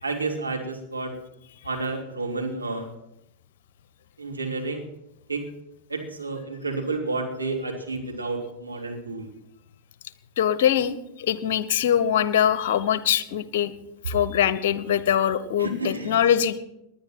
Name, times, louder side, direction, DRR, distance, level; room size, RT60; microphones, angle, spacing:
voice 1, 0.0-1.1 1.6-2.9 4.2-4.8 5.3-5.5 5.9-9.3 14.0-14.1 15.6-16.1, right 3 dB, 80° right, 1 dB, 3.3 m, -30 dB
voice 2, 10.4-13.7 14.1-16.6, left 9 dB, 55° left, 15 dB, 1.0 m, -23 dB
20.0 x 10.5 x 6.0 m, 0.84 s
figure-of-eight pair, 90°, 0 cm